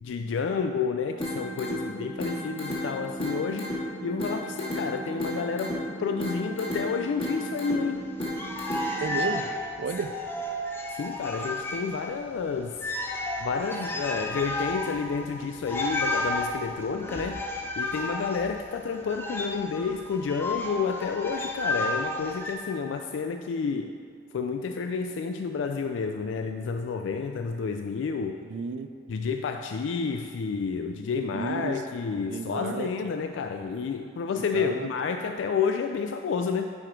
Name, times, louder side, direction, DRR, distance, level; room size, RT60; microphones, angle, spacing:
voice 1, 0.0-3.8 4.0-8.1 10.9-12.8 13.4-17.5 17.8-23.9 24.3-28.4 29.1-36.6, left 5 dB, 80° left, 6 dB, 0.3 m, -30 dB
sound 1, 1.2-9.2, equal, 30° left, 1.9 m, -34 dB
sound 2, 8.2-12.1 12.4-12.5 12.7-22.5, left 1 dB, 10° left, 0.7 m, -32 dB
voice 2, 9.0-9.5 9.8-10.1 28.4-28.9 31.3-31.8 32.1-32.9 34.3-34.9, right 5 dB, 70° right, 10 dB, 0.4 m, -33 dB
9.5 x 5.0 x 4.5 m, 2.4 s
head